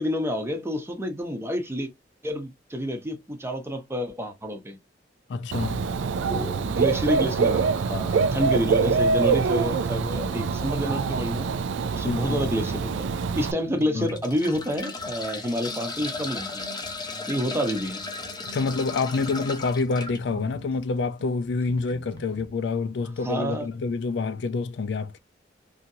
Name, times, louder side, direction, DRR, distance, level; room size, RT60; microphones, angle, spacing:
voice 1, 0.0-1.9 2.2-4.8 6.2-11.5 11.9-13.1 13.4-16.7 17.3-18.0 23.2-23.7, equal, 15° right, 0.7 m, -29 dB
voice 2, 5.3-5.9 12.0-12.4 13.9-14.1 18.5-25.2, left 4 dB, 70° left, 0.4 m, -27 dB
Dog / Bird, 5.5-13.5, right 5 dB, 85° right, 0.3 m, -25 dB
sound 1, 10.1-22.5, right 3 dB, 70° right, 1.0 m, -47 dB
sound 2, 11.9-12.1 12.7-12.8 13.8-20.2 21.8-21.9 22.2-22.3, left 3 dB, 25° left, 0.6 m, -36 dB
2.8 x 2.7 x 2.6 m
head